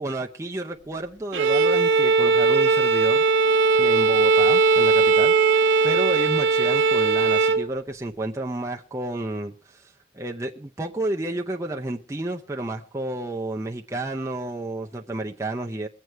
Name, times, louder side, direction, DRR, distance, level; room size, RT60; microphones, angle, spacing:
voice 1, 0.0-3.2 3.8-5.3 5.8-15.9, right 2 dB, 15° right, 0.6 m, -31 dB
Bowed string instrument, 1.3-7.7, right 4 dB, 80° right, 0.9 m, -19 dB
22.0 x 8.0 x 4.5 m
head